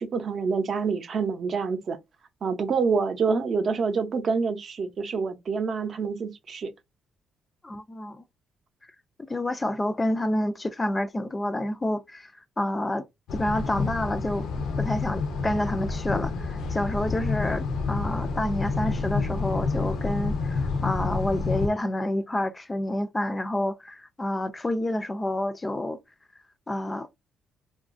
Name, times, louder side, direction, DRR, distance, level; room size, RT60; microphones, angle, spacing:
voice 1, 0.0-2.0 2.4-6.7, right 5 dB, 50° right, 0.6 m, -27 dB
voice 2, 7.6-8.2 9.3-14.5 14.8-26.0 26.7-27.1, left 1 dB, 20° left, 0.3 m, -29 dB
sound 1, 13.3-21.7, left 4 dB, 75° left, 0.5 m, -29 dB
2.8 x 2.3 x 2.4 m
cardioid pair, 90°, 0 cm